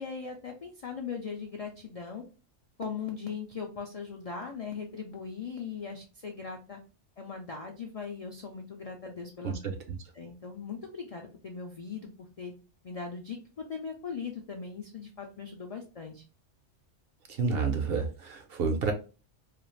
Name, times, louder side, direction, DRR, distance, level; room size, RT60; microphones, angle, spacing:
voice 1, 0.0-2.2 2.8-6.8 7.2-9.6 10.2-12.5 12.8-16.2, left 5 dB, 60° left, 0.4 m, -39 dB
voice 2, 9.4-10.0 17.3-18.9, right 5 dB, 60° right, 0.7 m, -30 dB
2.5 x 2.4 x 3.1 m
omnidirectional pair, 1.3 m